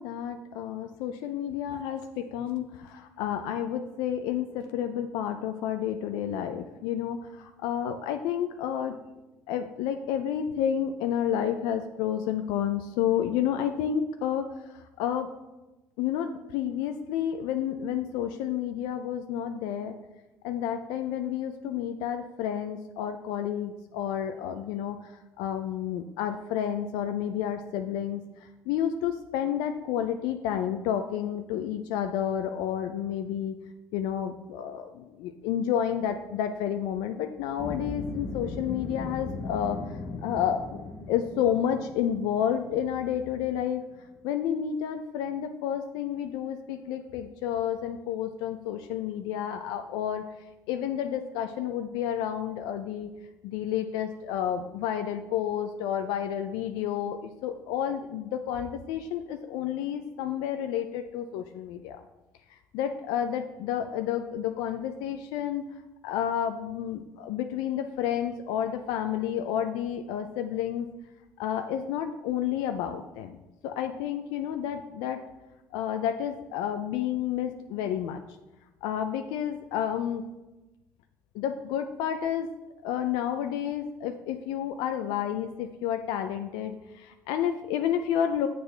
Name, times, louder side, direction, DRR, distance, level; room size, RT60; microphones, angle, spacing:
voice 1, 0.0-9.0 9.5-15.3 16.0-19.9 20.4-28.2 28.7-33.6 33.9-39.9 40.2-40.8 41.1-43.8 44.2-50.2 50.7-53.1 53.4-62.0 62.5-65.6 66.0-70.9 71.4-73.4 73.6-75.2 75.7-78.2 78.8-80.3 81.3-82.5 82.8-88.5, left 9 dB, 80° left, 7 dB, 0.4 m, -30 dB
sound 1, 37.6-43.8, left 3 dB, 40° left, 1.0 m, -38 dB
7.7 x 6.7 x 3.3 m, 1.0 s
cardioid pair, 110°, 7 cm